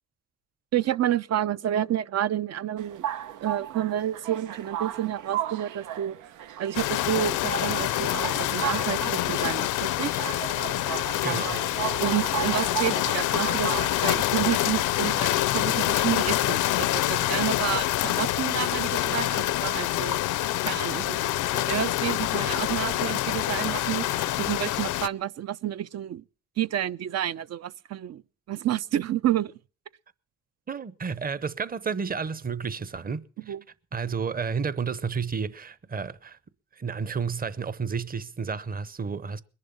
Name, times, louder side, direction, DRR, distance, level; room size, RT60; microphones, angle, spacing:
voice 1, 0.7-3.1 3.4-6.2 6.6-10.2 12.0-26.2 26.6-28.2 28.5-29.6 33.5-33.6, right 11 dB, 55° right, 0.7 m, -30 dB
sound 1, 2.8-17.6, right 10 dB, 90° right, 0.9 m, -36 dB
sound 2, 6.7-25.1, left 15 dB, 80° left, 0.7 m, -26 dB
voice 2, 11.2-11.7 17.1-17.3 30.7-33.5 33.9-36.4 36.8-39.4, right 5 dB, 30° right, 0.9 m, -31 dB
21.5 x 11.0 x 5.4 m
cardioid pair, 90°, 30 cm